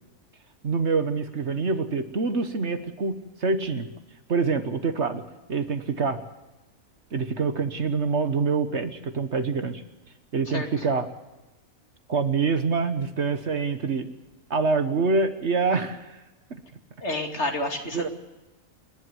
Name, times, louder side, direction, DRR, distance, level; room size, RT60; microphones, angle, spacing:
voice 1, 0.6-3.9 4.3-5.2 5.5-6.2 7.1-9.8 10.3-11.1 12.1-14.1 14.5-16.2 16.5-16.6 17.9-18.1, right 4 dB, 55° right, 9 dB, 1.5 m, -25 dB
voice 2, 17.0-18.1, left 2 dB, 50° left, 3 dB, 2.9 m, -29 dB
28.5 x 11.0 x 9.4 m, 1.1 s
omnidirectional pair, 1.4 m